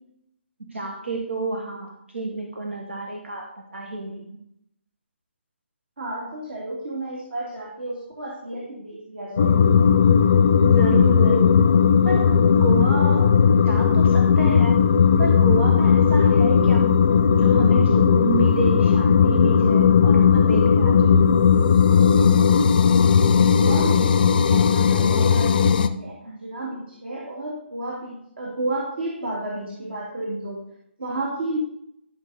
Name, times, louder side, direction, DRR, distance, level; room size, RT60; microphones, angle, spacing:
voice 1, 0.6-4.4 10.6-11.5 12.0-13.3 13.6-14.8 15.2-16.9 17.4-21.1, right 3 dB, 80° right, 1 dB, 1.7 m, -29 dB
voice 2, 6.0-9.6 23.5-30.6 31.0-31.6, right 2 dB, 60° right, -3 dB, 2.8 m, -32 dB
sound 1, 9.4-25.9, left 6 dB, 50° left, 0.6 m, -17 dB
13.0 x 6.1 x 4.2 m, 0.75 s
figure-of-eight pair, 140°, 6 cm